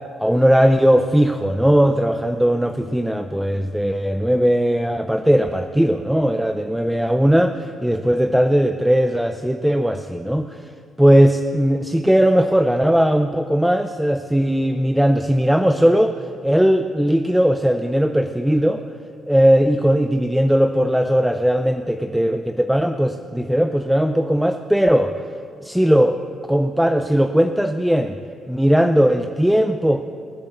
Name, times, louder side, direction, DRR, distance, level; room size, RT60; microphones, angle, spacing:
voice 1, 0.2-10.7 11.0-18.8 19.3-25.2 25.6-26.2 26.5-28.2 28.5-30.0, equal, 5° right, 8 dB, 0.6 m, -18 dB
20.0 x 7.6 x 7.9 m, 2.4 s
cardioid pair, 90°, 0 cm